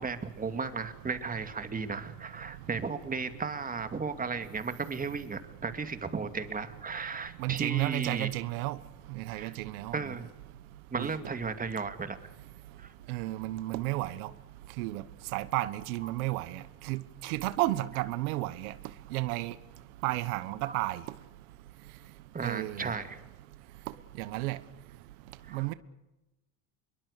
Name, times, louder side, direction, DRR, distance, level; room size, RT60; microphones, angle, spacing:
voice 1, 0.0-8.3 9.3-9.5 9.9-10.3 10.9-12.2 12.8-12.9 16.0-16.1 20.6-20.8 22.3-23.2 25.4-25.7, right 4 dB, 20° right, 2.5 m, -35 dB
voice 2, 7.4-8.8 9.1-10.1 11.0-11.1 13.1-14.3 14.8-15.0 15.3-18.7 19.1-19.5 20.0-21.0 22.4-22.9 24.2-24.6 25.5-25.7, right 18 dB, 90° right, 1.3 m, -32 dB
26.5 x 23.0 x 6.7 m
supercardioid pair, 120°, 42 cm